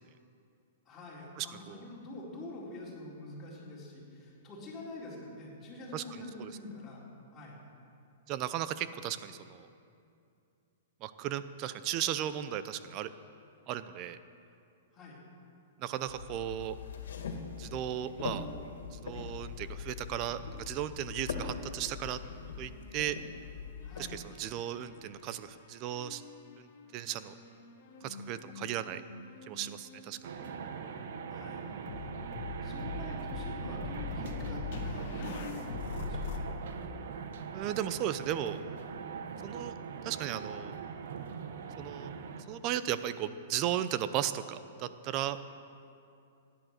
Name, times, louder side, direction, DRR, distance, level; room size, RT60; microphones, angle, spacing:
voice 1, 0.9-7.0 7.3-7.6 14.9-15.2 23.8-24.2 31.3-31.6 32.6-36.4, left 2 dB, 20° left, -5 dB, 3.9 m, -46 dB
voice 2, 1.4-1.8 5.9-6.0 6.4-6.5 8.3-9.7 11.0-13.1 13.7-14.2 15.8-16.8 17.6-18.4 18.9-22.2 22.6-23.2 24.1-26.2 26.6-27.3 28.0-29.0 29.5-30.2 37.5-38.6 39.4-39.7 40.0-40.7 41.8-42.1 42.5-45.4, right 11 dB, 35° right, 13 dB, 0.6 m, -36 dB
sound 1, 16.1-24.2, left 5 dB, 90° left, 2.0 m, -42 dB
sound 2, 21.9-23.5 23.8-25.2 25.9-36.4, left 4 dB, 50° left, 1.5 m, -43 dB
sound 3, 30.2-42.4, right 6 dB, 65° right, 1.0 m, -41 dB
15.0 x 10.5 x 6.6 m, 2.6 s
hypercardioid pair, 155°, 0 cm